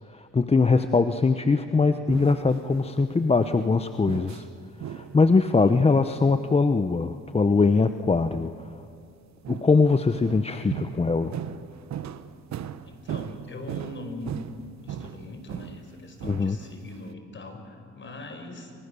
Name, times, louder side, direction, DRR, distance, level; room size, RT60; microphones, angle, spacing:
voice 1, 0.1-4.5 4.9-8.5 9.5-11.3 16.2-16.6, left 4 dB, 20° left, 9 dB, 0.8 m, -22 dB
sound 1, 2.1-2.9 3.4-3.7 4.1-4.5 4.8-5.2 5.6-5.8 9.4-15.9 16.2-17.0, right 9 dB, 65° right, 1.2 m, -37 dB
voice 2, 5.6-5.9 12.8-14.5 14.8-18.7, left 2 dB, 40° left, 6 dB, 4.8 m, -41 dB
29.5 x 25.0 x 7.0 m, 2.4 s
cardioid pair, 90°, 30 cm